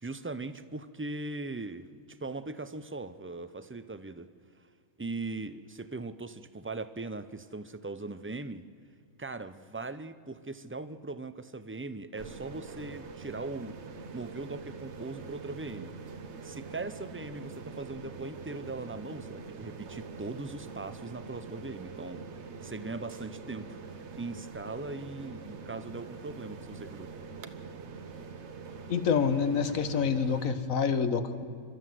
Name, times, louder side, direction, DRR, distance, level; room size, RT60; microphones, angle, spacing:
voice 1, 0.0-4.3 5.0-8.6 9.2-13.8 14.1-15.9 16.4-22.3 22.6-27.1, right 3 dB, 20° right, 12 dB, 0.3 m, -40 dB
sound 1, 12.2-30.5, right 4 dB, 60° right, 1.3 m, -44 dB
voice 2, 28.9-31.4, left 6 dB, 85° left, 10 dB, 1.6 m, -27 dB
29.5 x 13.0 x 7.7 m, 2.3 s
omnidirectional pair, 1.4 m